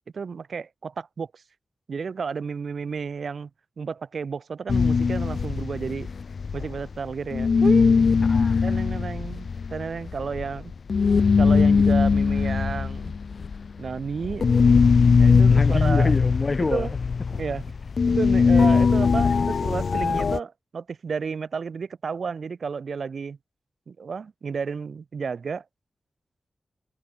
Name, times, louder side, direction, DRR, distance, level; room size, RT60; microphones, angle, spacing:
voice 1, 0.1-1.4 1.9-3.5 3.8-6.1 6.5-8.1 8.6-10.7 11.4-13.2 13.8-14.5 15.2-16.1 16.7-16.9 17.3-17.6 18.1-23.4 23.9-25.7, right 5 dB, 70° right, 7.1 m, -32 dB
sound 1, 4.7-7.1 7.3-20.4, left 5 dB, 65° left, 0.9 m, -20 dB
voice 2, 8.2-8.6 15.5-16.9, left 3 dB, 40° left, 7.9 m, -26 dB
wide cardioid pair, 100°, 0 cm